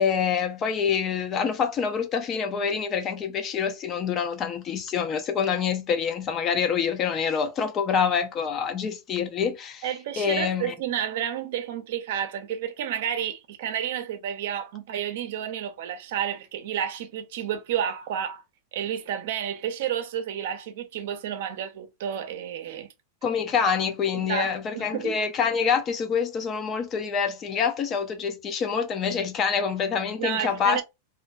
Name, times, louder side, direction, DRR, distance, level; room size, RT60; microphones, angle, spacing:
voice 1, 0.0-9.8 10.2-10.7 23.2-30.8, left 6 dB, 35° left, 0.5 m, -26 dB
voice 2, 9.8-18.4 18.7-22.9 24.1-25.2 30.2-30.8, right 9 dB, 70° right, 0.5 m, -31 dB
2.5 x 2.2 x 2.5 m
hypercardioid pair, 120°, 0 cm